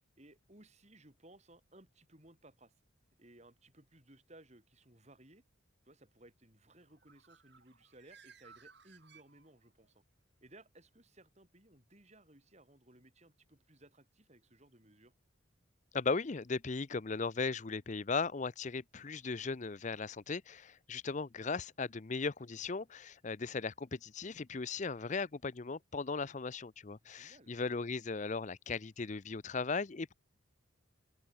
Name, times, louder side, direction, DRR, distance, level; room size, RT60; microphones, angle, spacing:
voice 1, 0.2-2.7 3.2-5.4 5.8-10.0 10.4-15.1 27.0-27.5, right 1 dB, 35° right, 4.5 m, -61 dB
Bird, 6.8-9.9, right 6 dB, 55° right, 5.8 m, -61 dB
voice 2, 15.9-30.1, left 4 dB, 35° left, 0.6 m, -37 dB
open air
head